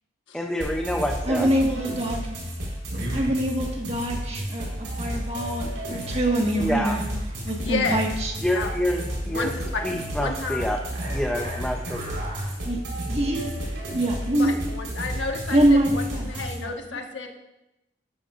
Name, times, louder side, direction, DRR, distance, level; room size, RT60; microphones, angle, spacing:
voice 1, 0.3-1.5 6.6-7.0 8.4-9.5 9.8-10.8 11.1-12.0, equal, 5° left, 2 dB, 0.6 m, -27 dB
sound 1, 0.6-16.6, equal, 85° right, 4.2 m, -32 dB
voice 2, 1.3-2.4 3.1-7.0 7.4-8.3 12.6-12.8 13.1-14.5 15.5-17.0, right 1 dB, 35° right, 1 dB, 1.6 m, -25 dB
voice 3, 7.6-8.0 8.5-8.7 9.2-9.8 10.2-10.6 14.4-15.6 15.9-17.3, left 4 dB, 80° left, 2 dB, 1.4 m, -31 dB
12.5 x 12.0 x 2.5 m, 0.91 s
head